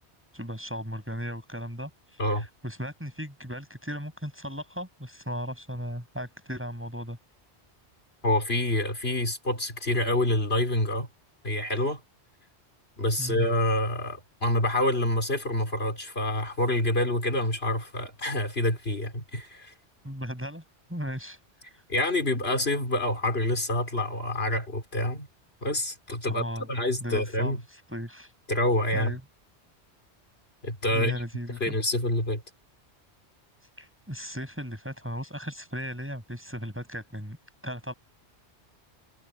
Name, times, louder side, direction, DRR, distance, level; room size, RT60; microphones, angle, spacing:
voice 1, 0.3-7.2 13.2-13.5 20.0-20.6 20.9-21.4 26.2-26.7 27.0-27.6 27.9-28.3 28.9-29.2 30.9-31.8 33.8-37.4 37.6-37.9, equal, 10° right, 7.2 m, -36 dB
voice 2, 8.2-11.1 11.4-12.0 13.0-19.7 21.9-25.3 25.6-27.6 28.5-29.1 30.6-31.2 31.6-32.4, left 1 dB, 60° left, 4.3 m, -27 dB
omnidirectional pair, 1.1 m